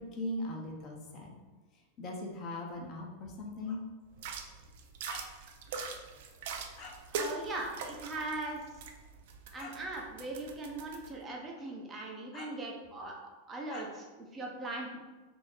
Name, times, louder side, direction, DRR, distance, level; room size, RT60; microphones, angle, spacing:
voice 1, 0.0-1.4 2.0-3.8 5.1-5.3 6.8-7.0 9.6-9.7 12.3-12.5 13.7-13.9, left 2 dB, 30° left, 0 dB, 0.6 m, -40 dB
sound 1, 4.1-11.1, right 4 dB, 50° right, 0.3 m, -42 dB
voice 2, 7.1-8.6 9.5-13.1 13.5-15.0, right 2 dB, 20° right, -1 dB, 0.7 m, -40 dB
3.1 x 2.6 x 3.3 m, 1.2 s
figure-of-eight pair, 90°, 0 cm